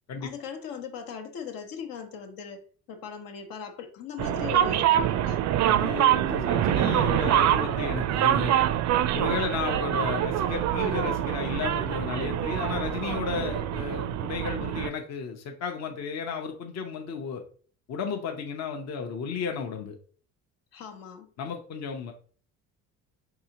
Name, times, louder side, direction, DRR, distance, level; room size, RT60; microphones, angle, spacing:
voice 1, 0.2-2.6 2.9-5.4 20.7-21.3, left 6 dB, 75° left, 1.0 m, -39 dB
sound 1, 4.2-14.9, right 11 dB, 50° right, 0.4 m, -25 dB
voice 2, 5.6-8.6 9.1-17.4 17.9-20.0 21.4-22.1, left 6 dB, 50° left, 0.7 m, -33 dB
4.7 x 2.8 x 2.9 m
supercardioid pair, 90°, 35 cm